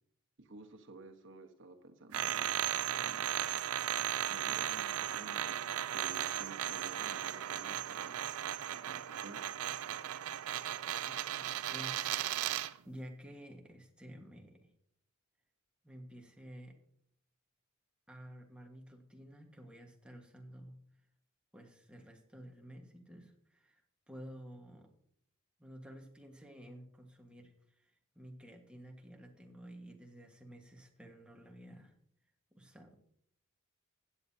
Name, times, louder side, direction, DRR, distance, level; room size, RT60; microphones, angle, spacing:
voice 1, 0.4-2.6 2.9-3.3 4.2-8.2 8.7-9.4, right 3 dB, 60° right, 5 dB, 1.3 m, -53 dB
sound 1, 2.1-12.8, right 11 dB, 80° right, 0.4 m, -36 dB
voice 2, 11.1-14.7 15.8-16.8 18.1-20.8 21.5-23.8 24.1-24.9 25.6-31.9 32.5-33.0, equal, 5° right, 1 dB, 1.5 m, -52 dB
15.5 x 9.3 x 2.8 m, 0.70 s
head